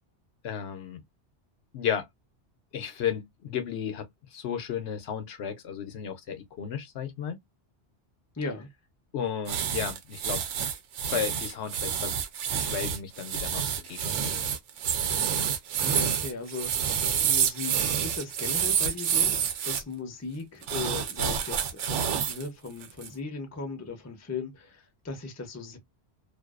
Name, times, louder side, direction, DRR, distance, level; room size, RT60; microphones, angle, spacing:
voice 1, 0.4-1.0 1.7-2.1 2.7-7.4 9.1-10.4 11.1-12.2 12.6-14.4, left 8 dB, 70° left, 0.9 m, -33 dB
voice 2, 8.3-8.7 15.8-19.4 19.6-25.8, left 4 dB, 20° left, 0.5 m, -37 dB
sound 1, 9.5-19.8 20.6-22.4 22.8-23.1, right 8 dB, 90° right, 0.9 m, -28 dB
2.5 x 2.3 x 2.3 m
omnidirectional pair, 1.2 m